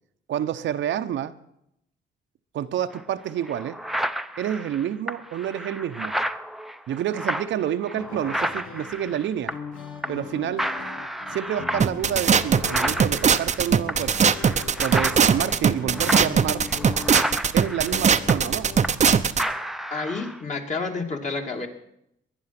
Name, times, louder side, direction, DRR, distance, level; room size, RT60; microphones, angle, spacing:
voice 1, 0.3-1.3 2.5-3.8 4.4-6.2 6.9-9.5 10.1-10.7 11.3-14.3 14.8-16.7 17.5-18.7, right 10 dB, 70° right, 0.9 m, -28 dB
sound 1, 2.9-3.0 3.4-9.8 10.0-10.3 10.6-19.1 19.4-20.4, equal, ahead, 0.7 m, -31 dB
sound 2, 7.9-18.9, left 5 dB, 80° left, 1.7 m, -39 dB
sound 3, 11.8-19.4, right 6 dB, 35° right, 0.7 m, -20 dB
voice 2, 19.9-21.7, left 4 dB, 40° left, 2.6 m, -29 dB
20.5 x 10.5 x 5.9 m
cardioid pair, 90°, 20 cm